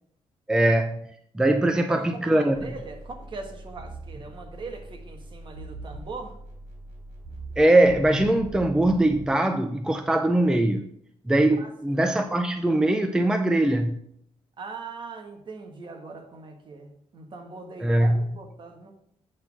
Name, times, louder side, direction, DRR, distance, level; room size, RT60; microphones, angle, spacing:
voice 1, 0.5-1.0 1.3-2.6 7.6-10.9 11.3-14.0 17.8-18.3, right 1 dB, 5° right, 7 dB, 0.5 m, -21 dB
voice 2, 1.9-6.4 11.6-12.0 14.6-18.9, right 4 dB, 45° right, 4 dB, 1.4 m, -41 dB
sound 1, 2.5-9.3, right 2 dB, 70° right, 3.2 m, -42 dB
8.3 x 3.9 x 6.0 m, 0.71 s
cardioid pair, 120°, 11 cm